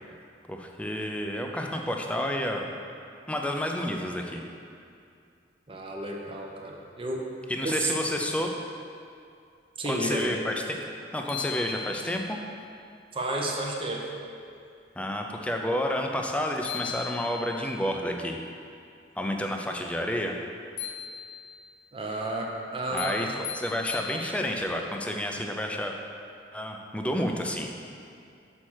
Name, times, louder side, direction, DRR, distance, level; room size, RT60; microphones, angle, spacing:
voice 1, 0.5-2.7 3.3-4.4 7.5-8.5 9.8-10.5 11.0-12.4 15.0-18.4 19.2-20.3 22.9-25.9 26.5-27.8, left 1 dB, 5° left, 2 dB, 0.5 m, -30 dB
voice 2, 5.7-7.3 7.6-7.9 9.8-10.3 13.1-14.1 21.9-23.5, right 2 dB, 30° right, 0 dB, 0.8 m, -31 dB
sound 1, 10.8-10.9 11.3-12.4 16.3-16.4 16.6-17.7 20.8-21.7 23.0-24.7, left 8 dB, 60° left, 0.5 m, -38 dB
6.3 x 4.3 x 6.3 m, 2.4 s
head